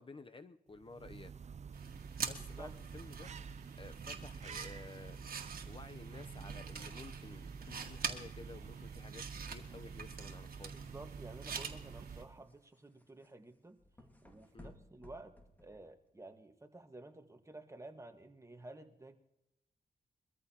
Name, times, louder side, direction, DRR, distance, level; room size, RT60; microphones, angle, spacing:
voice 1, 0.0-1.3 2.2-3.3 3.7-5.3 5.6-10.8 14.5-14.7, left 3 dB, 35° left, 9 dB, 0.7 m, -53 dB
sound 1, 0.7-12.6, right 6 dB, 45° right, 0.5 m, -49 dB
sound 2, 1.7-12.2, right 5 dB, 65° right, 1.8 m, -46 dB
sound 3, 10.5-16.2, left 1 dB, 10° left, 2.2 m, -61 dB
voice 2, 10.7-13.8 14.2-19.2, right 2 dB, 20° right, 6 dB, 1.5 m, -52 dB
23.0 x 14.0 x 2.9 m, 0.86 s
cardioid pair, 75°, 16 cm